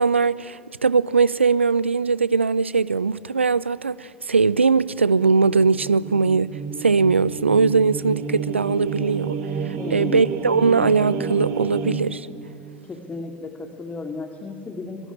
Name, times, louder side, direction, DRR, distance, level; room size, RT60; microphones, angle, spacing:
voice 1, 0.0-6.5 6.8-9.4 9.6-12.3, right 4 dB, 90° right, 0.5 m, -20 dB
sound 1, 5.7-11.9, right 6 dB, 55° right, 3.4 m, -30 dB
voice 2, 9.8-10.3 12.8-15.1, left 3 dB, 25° left, 2.6 m, -33 dB
25.5 x 21.5 x 9.8 m
figure-of-eight pair, 75°, 6 cm